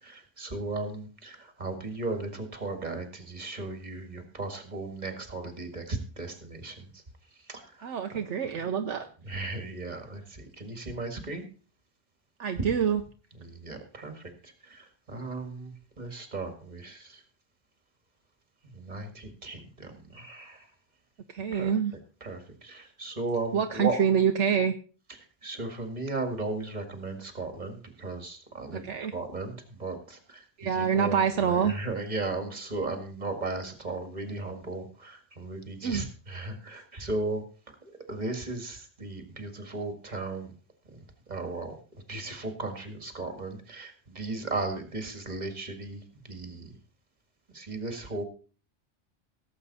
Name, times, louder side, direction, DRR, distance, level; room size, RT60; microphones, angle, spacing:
voice 1, 0.0-7.0 7.4-8.2 8.5-8.6 9.2-11.4 12.6-12.7 13.4-17.2 18.6-20.7 21.5-21.7 22.2-24.0 25.1-37.4 37.8-40.5 40.8-46.8 47.5-48.2, right 3 dB, 35° right, 6 dB, 2.1 m, -36 dB
voice 2, 7.8-9.1 12.4-13.0 21.3-21.9 23.5-24.7 28.8-29.1 30.6-31.7 35.8-36.0, right 7 dB, 70° right, 6 dB, 1.1 m, -26 dB
17.5 x 7.8 x 4.2 m, 0.39 s
omnidirectional pair, 1.3 m